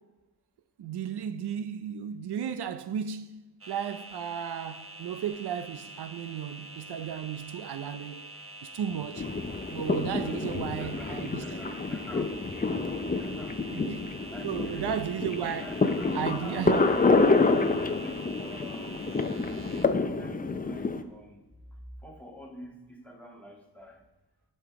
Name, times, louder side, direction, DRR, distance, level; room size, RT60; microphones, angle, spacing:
voice 1, 0.8-8.3 8.6-9.3 9.7-11.6 13.7-14.0 14.4-15.7 16.1-16.9, right 8 dB, 75° right, 0.6 m, -34 dB
sound 1, 3.6-19.9, right 1 dB, 35° right, 1.0 m, -46 dB
sound 2, 9.2-21.0, left 3 dB, 20° left, 0.6 m, -28 dB
voice 2, 10.1-12.4 12.8-13.6 14.3-14.9 15.6-17.0 17.5-21.4 22.0-24.0, left 1 dB, 5° left, 1.8 m, -46 dB
10.0 x 5.5 x 4.8 m
cardioid pair, 75°, 39 cm